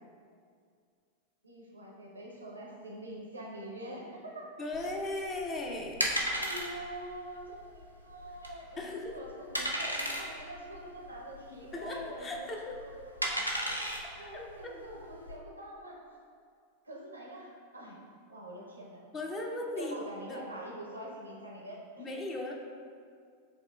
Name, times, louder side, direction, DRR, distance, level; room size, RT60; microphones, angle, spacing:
voice 1, 1.4-4.5 6.3-13.1 14.2-16.0 16.8-18.0 18.3-19.0 19.7-22.1, right 1 dB, 80° right, -3 dB, 0.7 m, -45 dB
voice 2, 4.6-6.0 8.8-9.2 11.7-12.7 13.3-13.4 14.2-14.3 14.6-14.7 19.1-19.9 20.3-20.4 22.0-22.5, left 2 dB, 25° left, 1 dB, 0.5 m, -37 dB
sound 1, 4.7-15.4, equal, 90° left, 0.4 m, -36 dB
7.0 x 2.4 x 2.2 m, 2.2 s
figure-of-eight pair, 90°, 0 cm